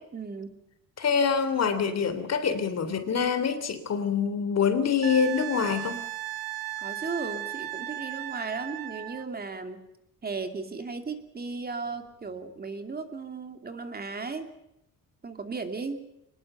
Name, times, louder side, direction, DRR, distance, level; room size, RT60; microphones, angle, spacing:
voice 1, 0.1-0.6 6.8-9.8 10.2-14.5 15.2-16.0, right 4 dB, 25° right, 7 dB, 2.7 m, -36 dB
voice 2, 1.0-6.0, left 6 dB, 45° left, 11 dB, 3.2 m, -25 dB
Wind instrument woodwind instrument, 5.0-9.3 12.0-12.1, right 14 dB, 75° right, 1.7 m, -36 dB
23.5 x 20.5 x 6.9 m, 0.82 s
cardioid pair, 130°, 36 cm